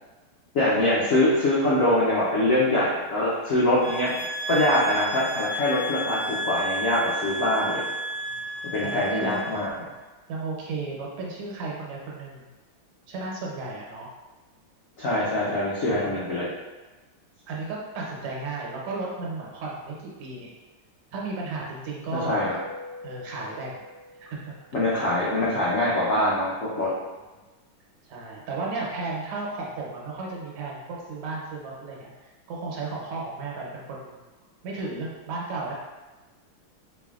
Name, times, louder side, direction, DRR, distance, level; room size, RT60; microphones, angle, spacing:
voice 1, 0.5-4.1 4.5-7.8 8.7-9.9 15.0-16.5 22.2-22.5 24.7-26.5 26.8-26.9, left 1 dB, 85° left, -7 dB, 0.7 m, -23 dB
sound 1, 3.8-9.6, right 1 dB, 35° right, 0.4 m, -32 dB
voice 2, 8.8-9.4 10.3-12.5 13.1-14.1 15.8-16.2 17.5-20.5 21.1-22.5 23.0-23.8 24.2-24.5 28.0-34.2 34.6-35.7, right 3 dB, 85° right, -3 dB, 1.8 m, -34 dB
Keyboard (musical), 22.2-24.7, left 3 dB, 65° right, 1.1 m, -41 dB
4.2 x 3.3 x 2.4 m, 1.2 s
omnidirectional pair, 2.4 m